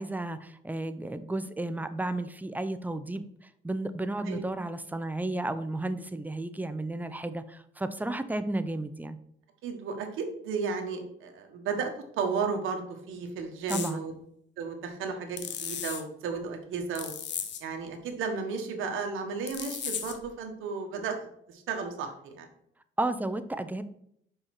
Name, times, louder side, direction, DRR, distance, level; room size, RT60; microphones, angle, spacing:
voice 1, 0.0-3.3 3.6-9.2 13.7-14.0 23.0-23.8, right 2 dB, 10° right, 11 dB, 0.7 m, -33 dB
voice 2, 9.6-14.1 14.6-17.1 17.6-21.2 21.5-22.5, right 5 dB, 90° right, 4 dB, 1.4 m, -34 dB
sound 1, 13.7-13.9 15.4-16.0 16.9-17.6 19.5-20.2, left 8 dB, 65° left, 1.0 m, -35 dB
5.5 x 5.5 x 6.0 m, 0.71 s
cardioid pair, 90°, 20 cm